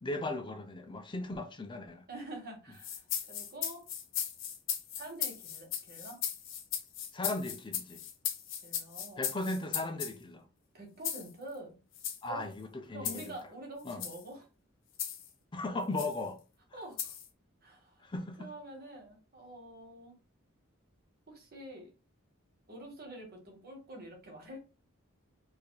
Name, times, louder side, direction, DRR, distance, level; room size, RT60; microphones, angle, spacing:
voice 1, 0.0-2.1 7.1-8.0 9.2-10.4 12.2-13.3 13.8-14.0 15.5-16.4 16.7-16.8 18.0-18.5, left 2 dB, 25° left, 0.5 m, -37 dB
voice 2, 2.1-3.8 5.0-6.2 8.6-9.2 10.7-11.8 12.3-12.5 12.9-14.5 16.7-17.2 17.6-18.1 18.4-20.1 21.3-21.9 22.7-24.6, right 1 dB, 50° right, 1.3 m, -46 dB
sound 1, 2.8-10.2 11.0-11.3 11.9-12.2 13.0-13.3 13.9-14.2 15.0-15.3 16.0-16.2 17.0-17.3, left 9 dB, 65° left, 0.8 m, -37 dB
4.8 x 2.6 x 2.2 m
head